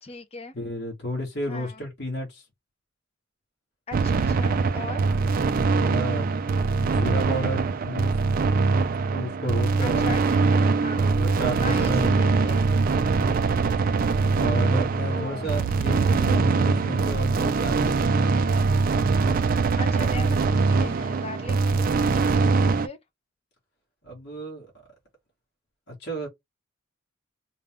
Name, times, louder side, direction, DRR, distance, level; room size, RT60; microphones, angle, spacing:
voice 1, 0.0-0.6 1.5-1.8 3.9-5.1 9.8-11.1 11.6-12.6 15.1-16.1 19.8-23.0, left 3 dB, 30° left, 0.7 m, -39 dB
voice 2, 0.5-2.4 5.8-6.3 6.8-8.2 9.1-10.1 10.9-12.4 14.4-17.9 24.0-24.7 25.9-26.3, equal, 55° left, 1.8 m, -32 dB
sound 1, 3.9-22.9, right 4 dB, 45° right, 0.4 m, -22 dB
3.9 x 2.3 x 3.6 m
head